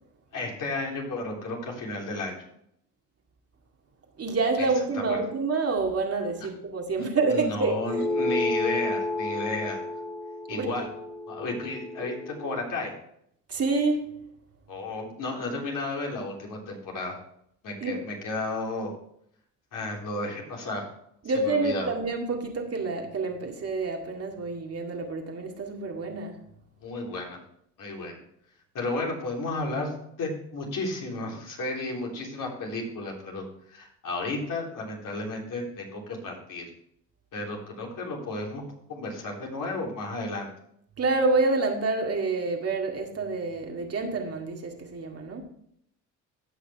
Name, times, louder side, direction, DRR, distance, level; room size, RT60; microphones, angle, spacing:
voice 1, 0.3-2.4 4.6-4.7 4.9-5.2 7.0-9.8 10.5-10.9 11.3-12.9 14.7-17.2 17.6-18.9 19.7-20.9 21.4-21.9 26.8-27.4 27.8-28.2 28.7-36.7 37.3-38.6 38.9-40.5, left 2 dB, 60° left, -1 dB, 3.5 m, -33 dB
voice 2, 4.2-8.0 10.5-10.7 13.5-14.1 17.8-18.0 21.2-26.4 41.0-45.4, right 3 dB, 40° right, 2 dB, 2.1 m, -28 dB
sound 1, 7.8-12.6, left 2 dB, 10° left, 0.8 m, -31 dB
15.0 x 6.0 x 3.5 m, 0.70 s
supercardioid pair, 65°, 37 cm